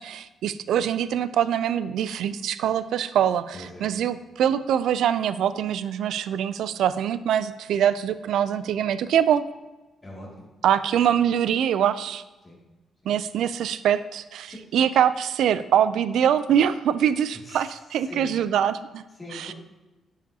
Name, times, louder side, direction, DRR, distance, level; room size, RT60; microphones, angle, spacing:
voice 1, 0.0-9.4 10.6-12.2 13.1-19.0 19.3-19.5, right 9 dB, 80° right, 14 dB, 0.3 m, -24 dB
voice 2, 3.5-3.9 10.0-10.5 12.4-12.6 13.0-13.1 14.5-14.6 17.4-17.7 18.0-18.4 19.2-19.5, left 1 dB, 15° left, -5 dB, 2.2 m, -42 dB
9.8 x 4.9 x 2.8 m, 1.1 s
cardioid pair, 115°, 0 cm